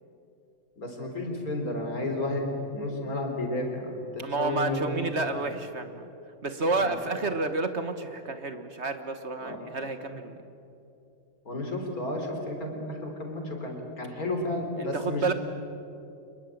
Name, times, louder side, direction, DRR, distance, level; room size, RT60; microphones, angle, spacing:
voice 1, 0.8-5.0 5.3-5.4 6.7-6.9 9.4-9.6 11.5-15.3, left 2 dB, 40° left, 3 dB, 4.3 m, -32 dB
voice 2, 4.2-6.1 6.4-10.4 14.8-15.3, right 3 dB, 40° right, 9 dB, 1.2 m, -30 dB
26.5 x 22.0 x 9.1 m, 2.8 s
omnidirectional pair, 2.4 m